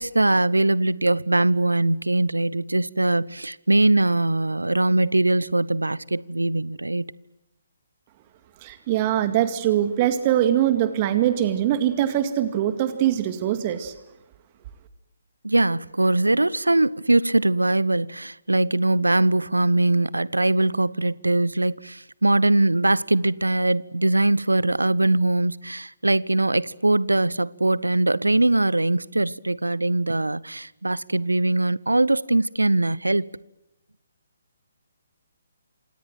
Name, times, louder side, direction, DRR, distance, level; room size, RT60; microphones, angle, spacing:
voice 1, 0.0-7.1 15.4-33.3, right 2 dB, 80° right, 1.0 m, -21 dB
voice 2, 8.6-13.9, right 11 dB, 30° right, 2.1 m, -22 dB
27.5 x 27.5 x 7.7 m
figure-of-eight pair, 140°, 0 cm